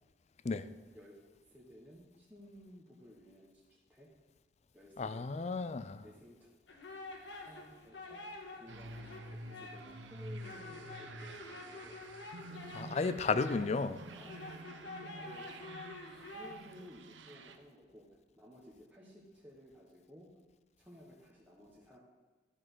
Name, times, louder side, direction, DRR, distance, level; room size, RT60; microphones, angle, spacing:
voice 1, 0.5-1.2 1.5-4.1 4.7-5.5 6.0-6.5 7.4-8.2 8.5-12.0 12.4-13.0 14.1-15.7 16.3-20.3 20.8-22.0, equal, 10° right, -5 dB, 1.3 m, -56 dB
voice 2, 5.0-6.0 12.7-14.0, left 4 dB, 35° left, 14 dB, 0.4 m, -33 dB
sound 1, 6.7-16.5, left 2 dB, 70° left, 1.5 m, -48 dB
sound 2, 8.7-17.6, right 2 dB, 75° right, 0.8 m, -49 dB
11.5 x 6.1 x 6.2 m, 1.3 s
head